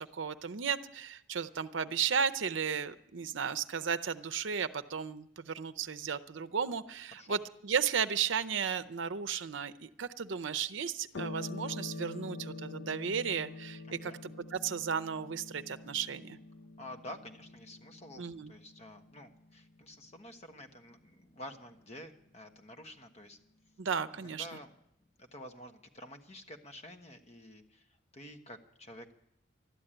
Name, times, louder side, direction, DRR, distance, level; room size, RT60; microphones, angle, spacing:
voice 1, 0.0-16.4 18.2-18.5 23.8-24.5, right 7 dB, 75° right, 12 dB, 0.6 m, -34 dB
sound 1, 11.1-20.0, left 3 dB, 80° left, 0.7 m, -46 dB
voice 2, 13.9-14.2 16.8-23.4 24.2-24.8 25.2-29.1, left 1 dB, 35° left, 6 dB, 1.2 m, -49 dB
12.5 x 11.5 x 8.9 m, 0.77 s
head